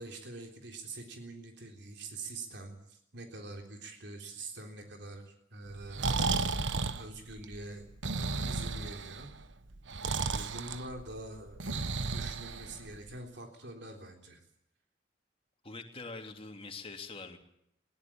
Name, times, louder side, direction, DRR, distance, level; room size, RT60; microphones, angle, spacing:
voice 1, 0.0-6.6 7.0-7.9 8.4-9.3 10.3-11.8 12.1-14.4, right 2 dB, 65° right, 3 dB, 3.7 m, -45 dB
Breathing, 5.7-13.1, right 4 dB, 85° right, 1.3 m, -34 dB
voice 2, 15.6-17.4, left 3 dB, 30° left, 4 dB, 2.9 m, -44 dB
21.5 x 17.5 x 8.8 m, 0.76 s
head